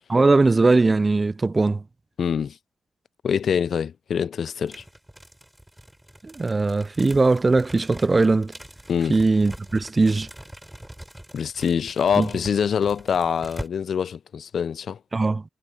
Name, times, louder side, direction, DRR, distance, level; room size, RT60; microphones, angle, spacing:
voice 1, 0.1-1.8 6.2-8.5 9.1-10.3 12.2-12.3 15.1-15.4, right 3 dB, 35° right, 0.3 m, -20 dB
voice 2, 2.2-2.6 3.2-4.8 8.9-9.2 11.3-15.0, left 7 dB, 70° left, 0.5 m, -24 dB
sound 1, 4.7-13.7, right 1 dB, 10° right, 4.9 m, -43 dB
supercardioid pair, 45°, 0 cm